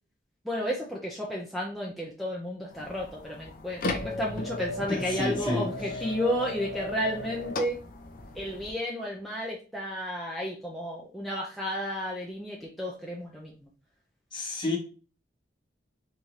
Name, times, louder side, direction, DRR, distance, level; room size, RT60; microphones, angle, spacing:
voice 1, 0.4-7.8 8.3-13.7, equal, ahead, 0.5 m, -32 dB
sound 1, 2.7-8.7, left 2 dB, 50° left, 0.6 m, -36 dB
voice 2, 4.9-6.0 14.3-14.8, left 2 dB, 25° left, 1.0 m, -31 dB
3.6 x 2.8 x 3.2 m
head